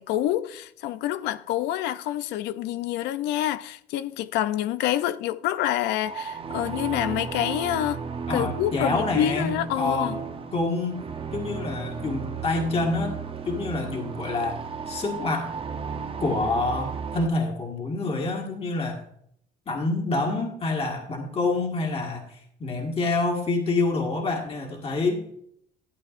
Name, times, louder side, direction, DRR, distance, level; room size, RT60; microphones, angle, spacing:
voice 1, 0.0-8.0 8.3-10.2, left 12 dB, 90° left, 0.5 m, -27 dB
sound 1, 6.0-17.3, right 6 dB, 35° right, 0.7 m, -34 dB
voice 2, 8.3-10.2 10.5-11.0 11.3-14.6 14.9-15.5 16.2-19.0 19.7-25.2, left 3 dB, 35° left, 1.7 m, -27 dB
12.0 x 8.7 x 2.5 m
cardioid pair, 110°, 17 cm